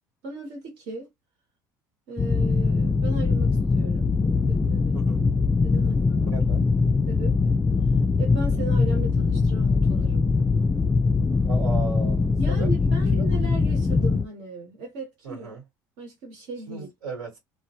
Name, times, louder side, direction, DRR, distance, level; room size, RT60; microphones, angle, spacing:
voice 1, 0.2-1.1 2.1-4.1 4.5-5.0 5.6-6.5 7.1-7.4 8.2-10.3 12.4-15.6 16.0-16.9, right 3 dB, 70° right, 1.0 m, -37 dB
sound 1, 2.2-14.3, left 4 dB, 20° left, 0.3 m, -22 dB
voice 2, 6.3-6.6 11.4-12.7 13.1-13.4 15.2-15.6 16.7-17.4, right 4 dB, 90° right, 1.2 m, -36 dB
2.1 x 2.1 x 2.7 m
hypercardioid pair, 75°, 9 cm